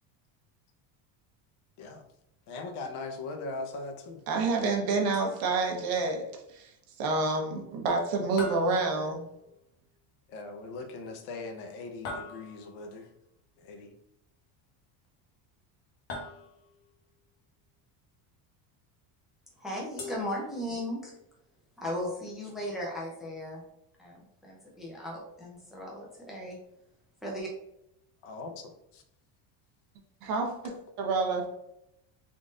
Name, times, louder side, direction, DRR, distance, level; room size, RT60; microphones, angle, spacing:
voice 1, 2.5-4.2 10.3-13.1 13.6-13.9 28.2-28.5 28.9-29.0, left 3 dB, 70° left, 5 dB, 0.8 m, -40 dB
voice 2, 4.3-6.3 6.5-6.7 7.0-9.3 30.2-31.5, right 3 dB, 55° right, 2 dB, 0.9 m, -28 dB
sound 1, 5.1-5.8 8.4-9.6 12.1-12.9 16.1-16.9 20.0-21.0, left 2 dB, 35° left, 0.8 m, -42 dB
voice 3, 19.6-21.2 21.8-23.6 24.0-26.6 27.2-27.5, left 1 dB, ahead, -4 dB, 0.4 m, -37 dB
3.7 x 2.5 x 3.7 m, 0.82 s
cardioid pair, 175°, 43 cm